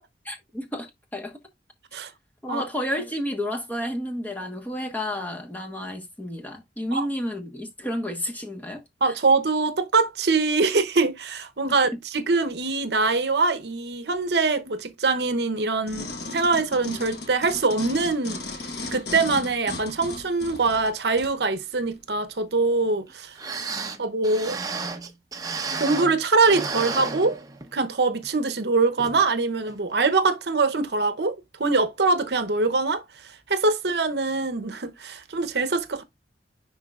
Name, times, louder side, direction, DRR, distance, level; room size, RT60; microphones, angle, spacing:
voice 1, 0.2-1.4 2.4-9.1, left 1 dB, 10° left, 1.3 m, -31 dB
voice 2, 9.0-18.4 18.9-23.3 24.0-24.6 25.7-27.4 27.7-36.0, right 3 dB, 65° right, 0.8 m, -23 dB
sound 1, 15.9-21.4 21.9-22.0, left 2 dB, 65° left, 1.2 m, -36 dB
sound 2, 23.1-23.2 23.4-26.2 26.4-27.8 28.2-28.3 29.0-29.2 29.7-29.8, right 4 dB, 20° right, 0.8 m, -32 dB
10.5 x 3.9 x 2.4 m
head